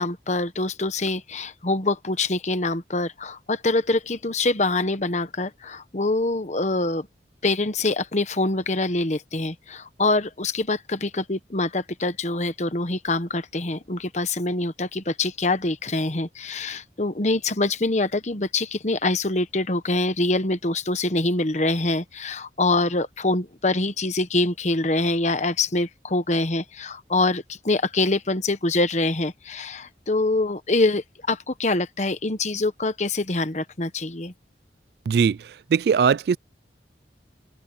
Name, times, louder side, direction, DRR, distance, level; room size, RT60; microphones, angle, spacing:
voice 1, 0.0-7.1 7.4-34.3, left 2 dB, 40° left, 1.1 m, -25 dB
voice 2, 35.1-36.4, right 6 dB, 65° right, 0.3 m, -20 dB
open air
head